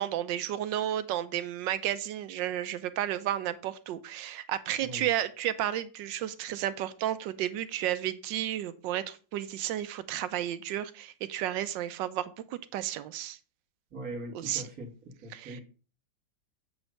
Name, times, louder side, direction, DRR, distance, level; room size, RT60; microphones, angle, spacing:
voice 1, 0.0-13.4 14.3-14.6 15.3-15.6, right 12 dB, 85° right, 13 dB, 1.3 m, -32 dB
voice 2, 13.9-14.9 15.2-15.6, right 1 dB, 55° right, 1 dB, 2.2 m, -40 dB
7.9 x 3.2 x 6.3 m, 0.37 s
omnidirectional pair, 2.0 m